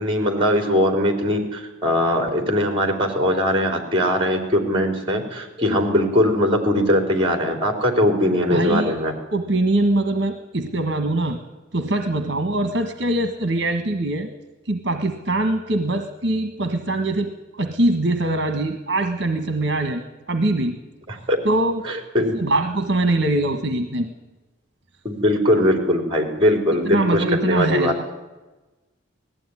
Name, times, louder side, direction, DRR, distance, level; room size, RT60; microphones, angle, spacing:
voice 1, 0.0-9.1 21.1-21.4 21.9-22.3 25.0-28.1, left 1 dB, 25° right, 5 dB, 3.9 m, -20 dB
voice 2, 8.5-9.0 9.3-11.4 11.7-14.3 14.6-20.0 20.3-20.8 21.4-21.8 22.3-24.1 26.8-28.1, right 2 dB, 60° right, 7 dB, 1.5 m, -22 dB
19.0 x 14.5 x 9.8 m, 1.1 s
head